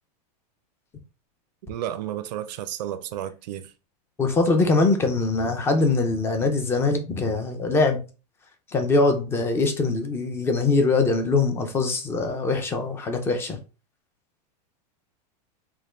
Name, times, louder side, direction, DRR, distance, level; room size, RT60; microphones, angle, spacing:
voice 1, 1.7-3.7, right 11 dB, 80° right, 0.4 m, -32 dB
voice 2, 4.2-8.0 8.7-13.6, left 3 dB, 10° left, 0.4 m, -22 dB
3.4 x 2.2 x 3.0 m
supercardioid pair, 155°, 21 cm